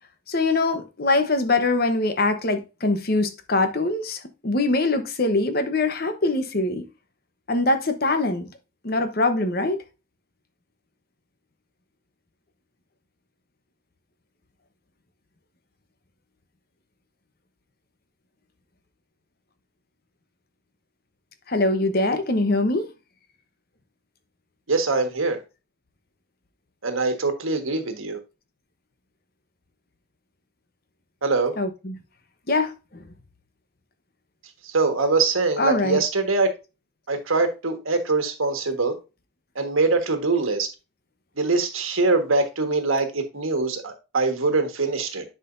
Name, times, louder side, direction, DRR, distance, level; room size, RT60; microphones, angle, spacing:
voice 1, 0.3-6.8 7.5-8.5 8.8-9.8 21.5-22.9 31.6-32.0 32.5-33.0 35.6-36.0, left 2 dB, 45° left, 1.0 m, -23 dB
voice 2, 24.7-25.4 26.8-28.2 31.2-31.5 34.6-36.5 37.1-38.9 39.5-40.7 41.4-45.2, right 3 dB, 85° right, 1.6 m, -23 dB
10.0 x 5.0 x 2.6 m
head